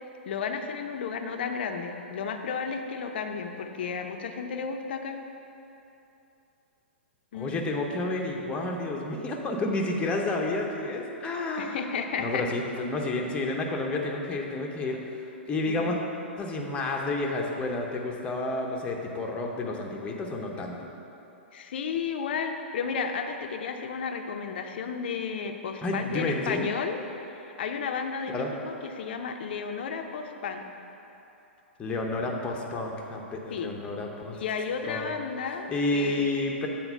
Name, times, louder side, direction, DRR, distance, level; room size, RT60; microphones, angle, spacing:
voice 1, 0.3-5.2 7.3-7.7 11.6-12.4 15.7-16.0 21.5-30.6 33.5-33.7 34.3-35.7 35.9-36.3, left 6 dB, 55° left, 5 dB, 0.6 m, -33 dB
voice 2, 7.3-11.8 12.2-15.0 15.5-16.0 16.4-20.9 25.8-26.7 28.3-28.5 31.8-34.4 34.9-35.1 35.7-36.7, left 2 dB, 15° left, 0 dB, 0.8 m, -30 dB
8.0 x 4.2 x 5.5 m, 2.9 s
figure-of-eight pair, 110°, 7 cm